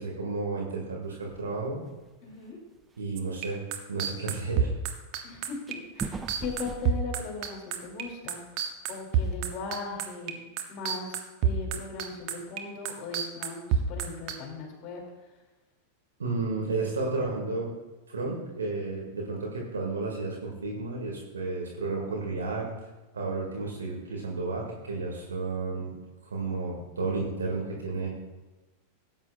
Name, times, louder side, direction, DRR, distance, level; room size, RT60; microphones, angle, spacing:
voice 1, 0.0-1.8 3.0-3.6 3.9-4.7 16.2-17.7 18.1-22.7 23.1-25.9 26.2-28.1, right 3 dB, 70° right, -1 dB, 2.0 m, -32 dB
sound 1, 1.3-1.6 1.9-2.3 2.7-2.8 3.3-3.4 5.7-8.1 8.5-8.6 8.9-9.3, right 4 dB, 15° right, 0.5 m, -40 dB
voice 2, 2.2-2.6 5.2-8.4 8.9-15.0, left 4 dB, 40° left, 0 dB, 2.6 m, -38 dB
sound 2, 3.2-10.3 10.6-14.3, right 8 dB, 40° right, 1.1 m, -28 dB
17.5 x 8.9 x 2.4 m, 1.1 s
figure-of-eight pair, 90°, 0 cm